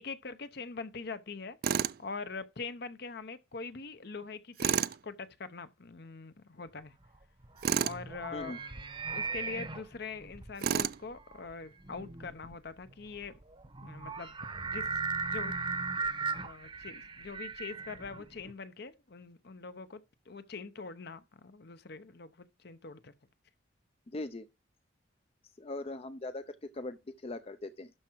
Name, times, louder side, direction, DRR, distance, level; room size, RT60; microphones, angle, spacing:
voice 1, 0.0-1.6 2.0-7.0 7.8-8.6 9.1-13.4 13.8-14.9 15.2-15.6 16.4-23.1, left 4 dB, 55° left, 0.8 m, -43 dB
Tools, 1.6-2.0 4.6-5.0 7.6-8.0 10.6-11.0, right 8 dB, 50° right, 0.4 m, -29 dB
sound 1, 7.1-18.5, right 4 dB, 25° right, 0.9 m, -38 dB
voice 2, 24.1-24.5 25.6-27.9, left 2 dB, 30° left, 0.5 m, -40 dB
12.0 x 4.7 x 4.5 m
head